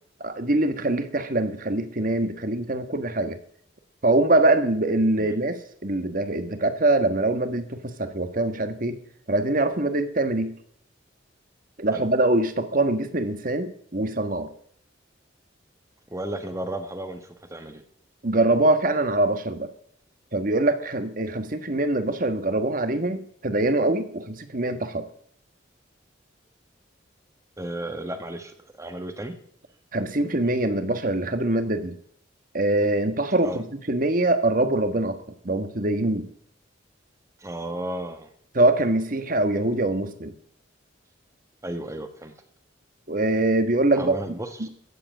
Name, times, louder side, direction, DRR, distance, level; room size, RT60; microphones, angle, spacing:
voice 1, 0.2-3.4 4.0-9.0 9.3-10.5 11.8-14.5 18.2-19.7 20.3-25.1 29.9-31.9 32.5-35.2 35.4-36.3 38.5-40.3 43.1-44.2 44.6-44.7, right 2 dB, 45° right, 10 dB, 1.5 m, -23 dB
voice 2, 16.1-17.8 27.6-29.3 33.4-33.6 37.4-38.3 41.6-42.3 43.9-44.7, right 1 dB, 15° right, 7 dB, 1.3 m, -34 dB
14.5 x 7.9 x 9.0 m, 0.65 s
head